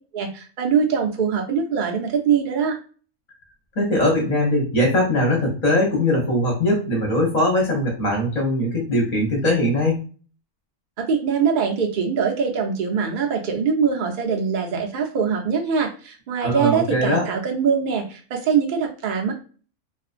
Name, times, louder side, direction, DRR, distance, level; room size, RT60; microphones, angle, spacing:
voice 1, 0.1-2.8 11.0-19.3, right 6 dB, 65° right, 2 dB, 0.4 m, -22 dB
voice 2, 3.8-10.0 16.4-17.3, left 1 dB, 35° left, -2 dB, 0.7 m, -21 dB
2.4 x 2.1 x 2.4 m, 0.39 s
omnidirectional pair, 1.4 m